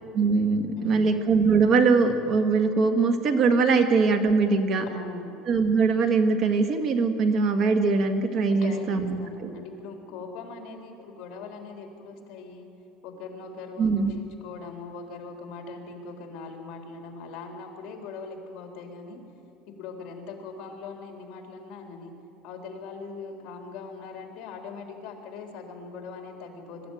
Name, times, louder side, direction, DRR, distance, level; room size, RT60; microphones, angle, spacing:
voice 1, 0.1-4.9 5.5-9.5 13.8-14.1, right 4 dB, 40° right, 7 dB, 1.7 m, -22 dB
voice 2, 0.8-1.1 4.9-5.3 8.6-12.7 13.0-19.2 19.7-22.1 22.4-26.9, left 4 dB, 50° left, 2 dB, 3.7 m, -41 dB
23.0 x 13.0 x 9.3 m, 2.7 s
cardioid pair, 165°, 0 cm